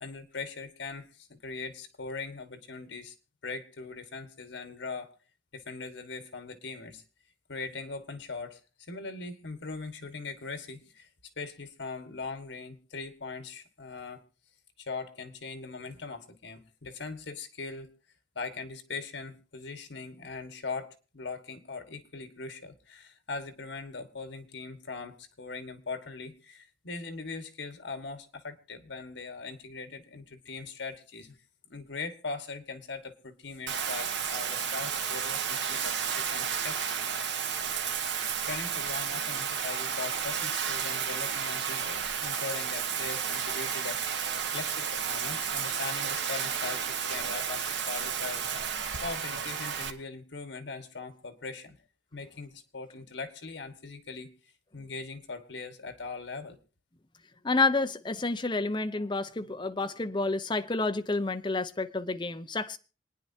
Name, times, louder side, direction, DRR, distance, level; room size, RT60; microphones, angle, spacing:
voice 1, 0.0-3.1 3.4-5.1 5.5-7.0 7.5-8.6 8.9-11.1 11.4-14.2 14.8-17.9 18.3-31.3 31.7-37.0 37.4-37.7 38.4-48.5 49.0-51.8 52.1-54.3 54.7-56.6, left 4 dB, 80° left, 1.7 m, -40 dB
Bathtub (filling or washing), 33.7-49.9, right 7 dB, 75° right, 1.2 m, -32 dB
voice 2, 57.4-62.8, left 3 dB, 25° left, 0.8 m, -29 dB
27.0 x 9.7 x 2.8 m
head